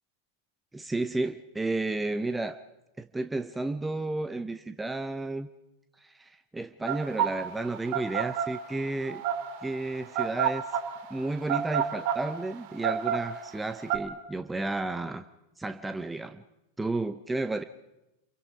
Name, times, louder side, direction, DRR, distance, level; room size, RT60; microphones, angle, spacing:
voice 1, 0.7-2.6 3.0-5.5 6.0-9.2 9.6-10.6 11.1-15.2 15.6-16.4 16.8-17.6, right 2 dB, 10° right, 11 dB, 0.7 m, -32 dB
sound 1, 6.9-14.0, right 9 dB, 45° right, 2.3 m, -29 dB
27.5 x 22.5 x 5.0 m, 0.94 s
figure-of-eight pair, 90°, 0 cm